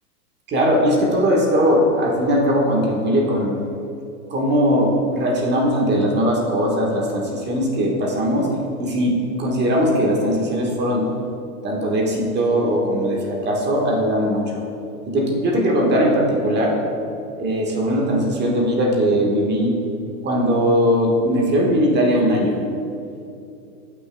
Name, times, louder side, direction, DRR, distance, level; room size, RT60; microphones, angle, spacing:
voice 1, 0.5-3.5 4.3-8.5 8.8-11.0 11.6-14.6 15.1-16.7 17.4-19.7 20.2-22.5, equal, 25° right, -1 dB, 1.5 m, -19 dB
15.0 x 6.1 x 2.3 m, 2.7 s
hypercardioid pair, 125°, 45 cm